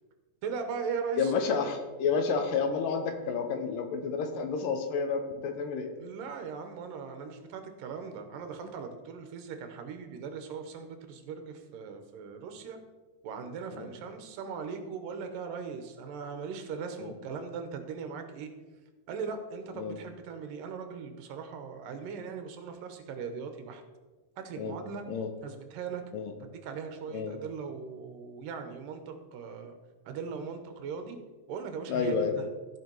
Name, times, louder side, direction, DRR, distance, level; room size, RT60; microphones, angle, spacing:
voice 1, 0.4-1.6 6.0-12.8 13.2-18.5 19.1-23.8 24.4-25.0 25.4-26.0 26.4-29.7 30.1-31.2 31.5-32.5, right 5 dB, 80° right, 7 dB, 2.5 m, -39 dB
voice 2, 1.2-5.9 13.7-13.9 17.0-17.1 19.8-20.0 24.6-24.8 25.1-25.3 26.1-26.3 27.1-27.3 31.9-32.3, left 5 dB, 75° left, 6 dB, 2.6 m, -30 dB
15.5 x 5.3 x 4.6 m, 1.3 s
omnidirectional pair, 4.0 m